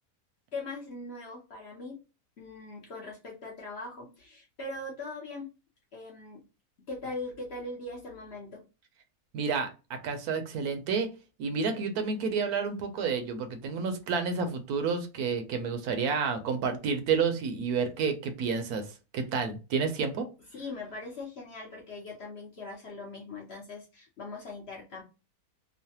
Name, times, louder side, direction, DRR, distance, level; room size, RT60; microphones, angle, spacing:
voice 1, 0.5-2.0 2.4-5.5 5.9-6.4 6.9-8.6 20.5-25.0, left 2 dB, 55° left, -1 dB, 0.8 m, -40 dB
voice 2, 9.3-11.1 11.4-18.9 19.1-20.3, right 5 dB, 80° right, 7 dB, 1.1 m, -30 dB
3.1 x 2.0 x 2.8 m, 0.30 s
omnidirectional pair, 1.6 m